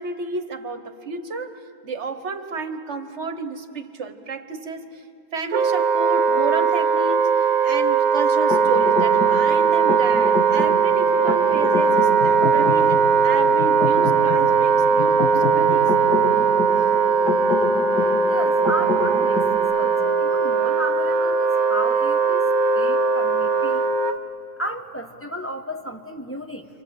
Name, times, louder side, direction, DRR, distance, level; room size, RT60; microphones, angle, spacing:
voice 1, 0.0-5.0 5.3-15.9, right 4 dB, 45° right, 8 dB, 1.4 m, -31 dB
Wind instrument woodwind instrument, 5.5-24.1, right 5 dB, 65° right, 1.4 m, -19 dB
sound 1, 8.5-19.6, left 3 dB, 85° left, 3.4 m, -28 dB
voice 2, 18.2-22.5 22.7-23.9 24.6-26.7, equal, 10° left, 2 dB, 1.1 m, -33 dB
29.0 x 25.5 x 8.1 m, 2.7 s
omnidirectional pair, 1.7 m